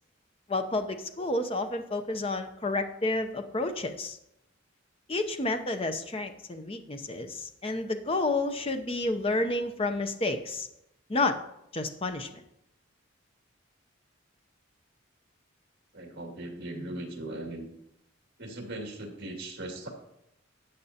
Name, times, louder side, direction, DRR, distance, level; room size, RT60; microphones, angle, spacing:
voice 1, 0.5-4.2 5.1-10.7 11.1-11.4 11.7-12.3, left 2 dB, 30° left, 7 dB, 0.7 m, -30 dB
voice 2, 15.9-17.7 18.4-19.9, right 1 dB, 55° right, 1 dB, 2.3 m, -39 dB
13.0 x 8.5 x 2.9 m, 0.81 s
head